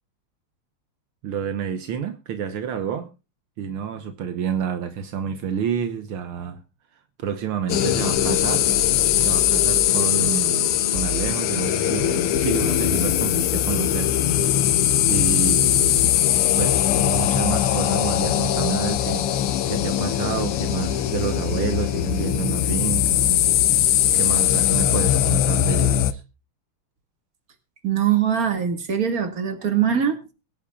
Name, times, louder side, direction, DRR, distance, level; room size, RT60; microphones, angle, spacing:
voice 1, 1.2-3.1 3.6-6.6 7.2-8.7 9.2-14.1 15.0-16.2 16.6-19.2 19.7-23.4 24.1-26.2, right 7 dB, 75° right, 1.9 m, -29 dB
sound 1, 7.7-26.1, left 11 dB, 90° left, 1.8 m, -21 dB
sound 2, 8.1-13.2, left 2 dB, 35° left, 1.0 m, -34 dB
voice 2, 27.8-30.3, right 8 dB, 40° right, 2.4 m, -22 dB
23.0 x 10.0 x 2.4 m
omnidirectional pair, 2.4 m